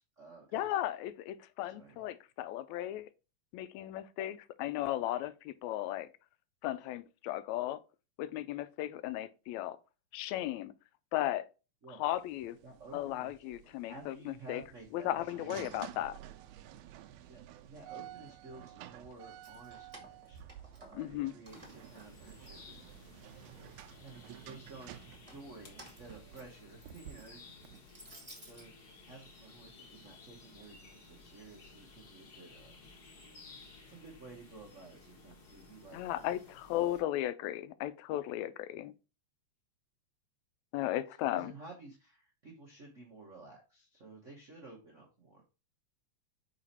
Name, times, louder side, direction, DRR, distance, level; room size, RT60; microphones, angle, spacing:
voice 1, 0.0-0.7 1.7-2.0 11.8-12.0 12.6-13.3 13.9-15.6 17.2-20.5 20.7-23.1 24.0-27.8 28.3-32.8 33.5-36.3 40.8-40.9 41.3-45.4, right 3 dB, 70° right, 0.7 m, -53 dB
voice 2, 0.5-3.1 3.5-6.1 6.6-7.8 8.2-9.8 10.1-10.7 11.1-11.5 12.0-12.6 12.9-14.6 14.9-16.1 21.0-21.3 35.9-38.9 40.7-41.5, left 13 dB, 80° left, 1.8 m, -36 dB
sound 1, 12.1-27.8, right 12 dB, 90° right, 2.0 m, -52 dB
Keys jangling, 19.2-21.2 21.5-23.1 23.5-24.2 25.0-28.7, right 1 dB, 20° right, 0.9 m, -56 dB
sound 2, 21.4-37.0, left 3 dB, 45° left, 1.5 m, -56 dB
5.1 x 4.8 x 4.2 m
omnidirectional pair, 3.3 m